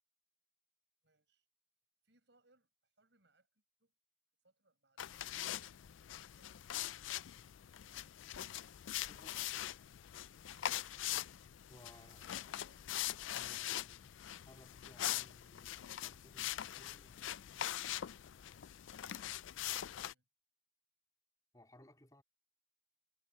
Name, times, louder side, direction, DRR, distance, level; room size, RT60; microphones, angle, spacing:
voice 1, 1.0-1.5 2.0-3.9 4.4-6.8 11.9-13.0 19.1-20.3, right 2 dB, 65° right, 7.0 m, -75 dB
sound 1, 5.0-20.1, left 12 dB, 80° left, 0.4 m, -42 dB
voice 2, 9.1-9.4 11.7-12.5 13.3-14.2 14.5-17.5 21.5-22.2, left 1 dB, 20° left, 3.7 m, -62 dB
Clapping, 11.9-13.7, right 5 dB, 40° right, 6.4 m, -76 dB
head